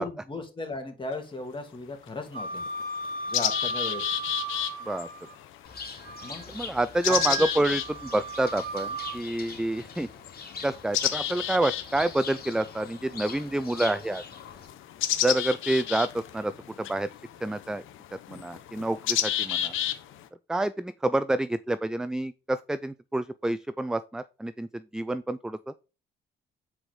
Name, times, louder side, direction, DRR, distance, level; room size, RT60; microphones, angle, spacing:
voice 1, 0.0-2.6 3.3-4.2 6.2-6.5 7.1-7.5, left 2 dB, 25° left, 4 dB, 2.7 m, -36 dB
sound 1, 1.1-1.2 2.1-2.2 2.6-20.3, left 11 dB, 85° left, 1.1 m, -33 dB
Wind instrument woodwind instrument, 2.3-5.3 5.7-6.5 7.0-9.2, right 3 dB, 50° right, 3.5 m, -35 dB
Bird, 5.6-14.7, left 5 dB, 50° left, 2.8 m, -43 dB
voice 2, 6.5-10.1 10.6-14.2 15.2-16.5 16.8-17.1 17.4-17.8 18.1-19.7 20.5-25.6, right 1 dB, 5° right, 14 dB, 0.4 m, -28 dB
9.0 x 4.8 x 3.7 m, 0.31 s
cardioid pair, 90°, 20 cm